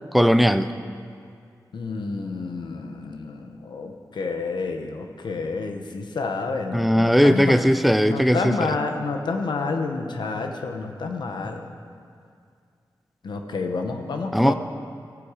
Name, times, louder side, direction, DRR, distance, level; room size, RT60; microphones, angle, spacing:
voice 1, 0.1-0.7 6.7-8.8 14.3-14.5, equal, ahead, 11 dB, 0.5 m, -18 dB
voice 2, 1.7-7.6 8.1-11.6 13.2-14.5, left 4 dB, 90° left, 5 dB, 1.0 m, -29 dB
15.5 x 8.5 x 5.0 m, 2.2 s
wide cardioid pair, 80°, 8 cm